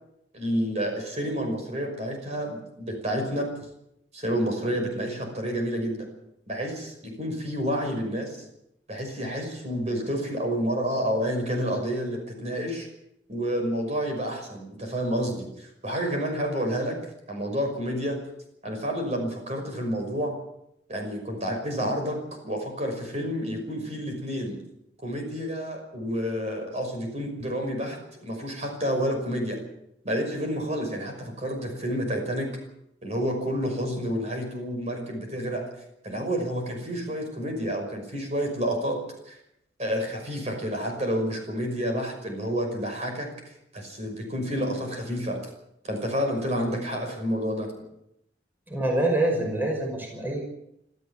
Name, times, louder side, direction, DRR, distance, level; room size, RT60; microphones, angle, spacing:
voice 1, 0.3-3.5 4.1-6.1 6.5-8.4 8.9-12.9 13.3-17.0 17.3-18.2 18.6-20.3 20.9-22.2 22.4-24.6 25.0-29.6 30.0-32.5 33.0-35.7 36.0-39.0 39.3-39.4 39.8-45.4 45.8-47.7, equal, 35° right, 3 dB, 5.8 m, -29 dB
voice 2, 48.7-50.4, right 1 dB, 10° right, 0 dB, 5.4 m, -25 dB
25.5 x 14.0 x 7.4 m, 0.80 s
head